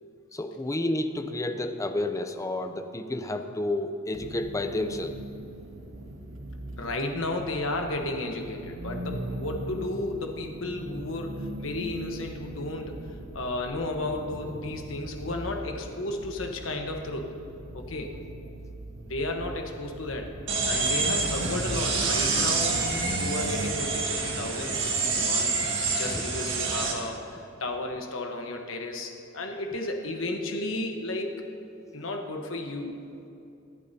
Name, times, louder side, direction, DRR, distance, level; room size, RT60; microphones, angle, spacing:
voice 1, 0.3-5.1 22.3-22.5 25.6-25.7 26.1-26.2, left 1 dB, 15° left, 7 dB, 0.6 m, -30 dB
sound 1, 4.1-23.7, right 1 dB, 85° right, 0.8 m, -39 dB
voice 2, 6.8-13.0 13.3-17.3 17.7-18.1 19.1-20.3 20.6-31.4 31.9-33.0, left 2 dB, 80° left, 3 dB, 1.2 m, -33 dB
sound 2, 20.5-26.9, right 4 dB, 65° right, 1.8 m, -27 dB
23.0 x 8.4 x 2.8 m, 2.7 s
head